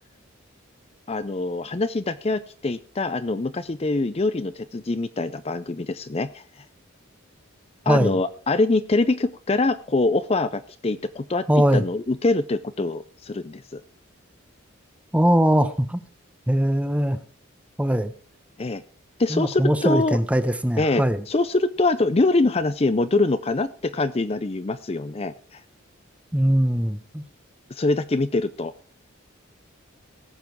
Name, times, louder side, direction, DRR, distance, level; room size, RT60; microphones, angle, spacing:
voice 1, 1.1-6.6 7.9-11.5 11.7-13.8 18.6-18.8 19.2-20.2 20.8-25.6 27.7-28.7, left 2 dB, 30° left, 12 dB, 0.5 m, -24 dB
voice 2, 7.9-8.2 11.5-11.8 15.1-16.0 16.5-17.2 17.8-18.1 19.3-21.2 26.3-27.2, equal, 5° right, 11 dB, 0.9 m, -21 dB
18.0 x 7.5 x 4.6 m, 0.43 s
head